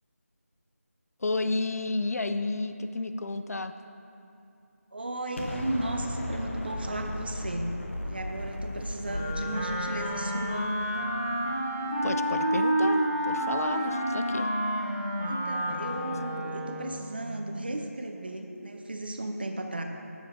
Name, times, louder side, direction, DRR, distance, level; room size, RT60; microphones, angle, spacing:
voice 1, 1.2-3.7 12.0-14.5, left 2 dB, 75° left, 10 dB, 0.4 m, -31 dB
voice 2, 4.9-7.7 8.0-10.8 13.6-13.9 15.2-19.8, right 1 dB, 40° right, 4 dB, 0.5 m, -35 dB
Explosion, 5.4-11.4, left 1 dB, 55° left, 0.8 m, -37 dB
Wind instrument woodwind instrument, 9.0-16.9, right 1 dB, 10° left, 0.4 m, -29 dB
7.1 x 6.1 x 4.3 m, 2.7 s
figure-of-eight pair, 175°, 8 cm